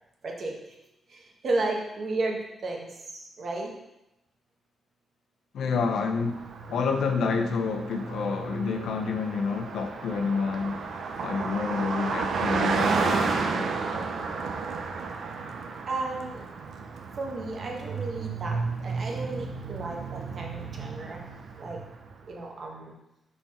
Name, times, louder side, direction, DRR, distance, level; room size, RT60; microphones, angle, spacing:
voice 1, 0.2-0.6 1.1-3.7 15.9-16.4 17.2-21.2 21.6-21.8 22.3-22.9, right 2 dB, 45° right, 0 dB, 1.2 m, -33 dB
voice 2, 5.5-10.8 11.2-13.7, left 5 dB, 80° left, 4 dB, 0.7 m, -29 dB
Car passing by, 6.1-22.1, right 4 dB, 65° right, 0.6 m, -32 dB
5.8 x 4.4 x 4.2 m, 0.89 s
wide cardioid pair, 140°, 0 cm